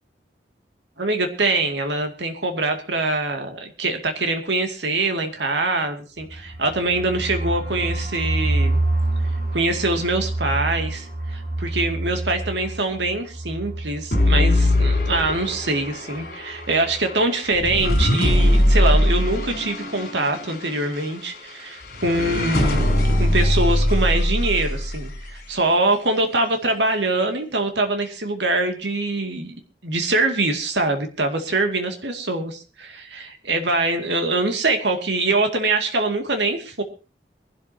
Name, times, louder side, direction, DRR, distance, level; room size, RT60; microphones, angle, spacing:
voice 1, 1.0-8.8 9.5-29.6 29.8-36.8, right 2 dB, 80° right, 5 dB, 2.3 m, -24 dB
sound 1, 6.2-15.9 16.2-16.3 16.6-17.1, right 2 dB, 60° right, 6.4 m, -28 dB
sound 2, 14.1-25.4, left 1 dB, 60° left, 4.4 m, -21 dB
23.5 x 12.0 x 2.8 m, 0.32 s
head